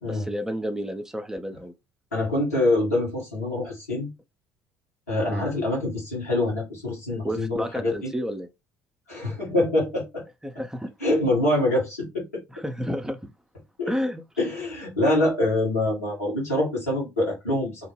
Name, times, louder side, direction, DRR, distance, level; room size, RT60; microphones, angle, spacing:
voice 1, 0.0-1.7 5.3-5.5 7.2-8.5 10.4-10.9 12.5-13.2 13.9-14.2, equal, 5° right, 0.5 m, -31 dB
voice 2, 2.1-4.1 5.1-8.1 9.1-10.2 11.0-12.2 13.8-13.9 14.4-17.9, left 1 dB, 80° left, 1.4 m, -25 dB
2.8 x 2.1 x 3.0 m
figure-of-eight pair, 55°, 8 cm